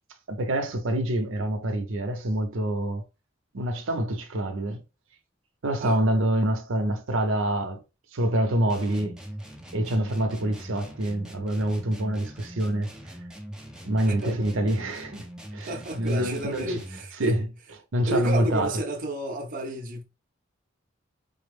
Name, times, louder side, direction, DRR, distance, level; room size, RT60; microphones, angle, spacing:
voice 1, 0.3-3.0 3.5-4.8 5.6-7.8 8.1-9.1 9.7-12.9 13.8-15.3 15.5-16.8 17.2-17.5 17.9-18.7, right 1 dB, 85° right, 0.7 m, -26 dB
sound 1, 8.7-17.2, equal, 5° right, 0.5 m, -42 dB
voice 2, 14.1-14.4 15.7-17.4 18.1-20.0, right 1 dB, 45° right, 0.6 m, -31 dB
3.9 x 2.0 x 3.3 m
head